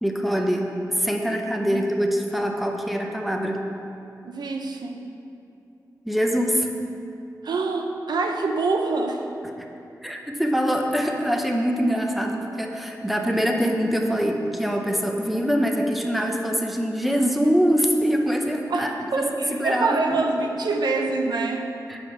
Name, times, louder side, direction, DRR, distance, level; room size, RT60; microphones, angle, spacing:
voice 1, 0.0-3.6 6.1-6.7 10.0-20.5 21.9-22.0, equal, ahead, 2 dB, 0.7 m, -24 dB
voice 2, 4.2-5.0 7.4-9.3 18.7-21.7, right 3 dB, 85° right, 3 dB, 0.6 m, -25 dB
7.1 x 4.9 x 5.6 m, 2.7 s
wide cardioid pair, 80°, 7 cm